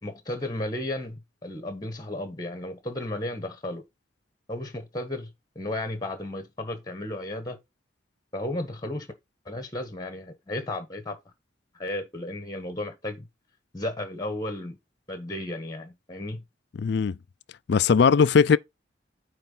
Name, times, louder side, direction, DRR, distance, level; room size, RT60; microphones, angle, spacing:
voice 1, 0.0-3.8 4.5-5.3 5.5-7.6 8.3-9.1 9.4-11.2 11.7-13.3 13.7-14.8 15.1-16.4, left 1 dB, 20° left, 1.4 m, -34 dB
voice 2, 16.8-17.2 17.7-18.6, left 6 dB, 60° left, 0.4 m, -19 dB
9.0 x 3.3 x 5.5 m
head